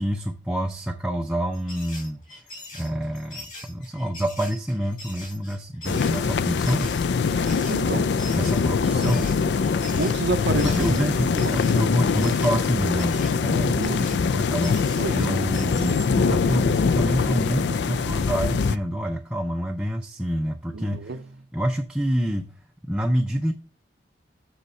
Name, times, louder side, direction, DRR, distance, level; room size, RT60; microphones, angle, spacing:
voice 1, 0.0-2.2 2.7-7.0 8.3-9.3 10.6-21.2 21.5-22.5 22.9-23.5, equal, 5° right, 0.4 m, -27 dB
sound 1, 1.5-16.1, left 1 dB, 45° left, 4.0 m, -42 dB
sound 2, 5.8-18.8, left 5 dB, 70° left, 0.4 m, -23 dB
voice 2, 7.3-8.2 10.0-11.6 13.6-14.2 14.9-15.4 20.7-21.3, right 3 dB, 75° right, 0.6 m, -30 dB
8.1 x 6.3 x 3.2 m
head